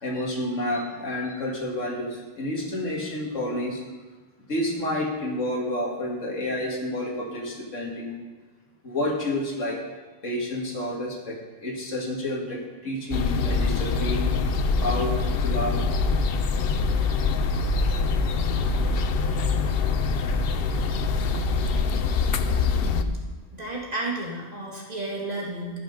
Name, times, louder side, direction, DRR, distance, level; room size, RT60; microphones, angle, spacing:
voice 1, 0.0-3.8 4.5-8.2 8.8-9.8 10.2-14.3 14.8-15.8 19.1-19.8 22.3-22.4, left 1 dB, 75° left, -1 dB, 2.3 m, -30 dB
sound 1, 13.1-23.0, left 4 dB, 60° left, 0.7 m, -24 dB
voice 2, 22.7-23.1 23.5-25.8, right 2 dB, 30° right, -3 dB, 2.1 m, -32 dB
15.5 x 6.0 x 5.2 m, 1.3 s
omnidirectional pair, 1.3 m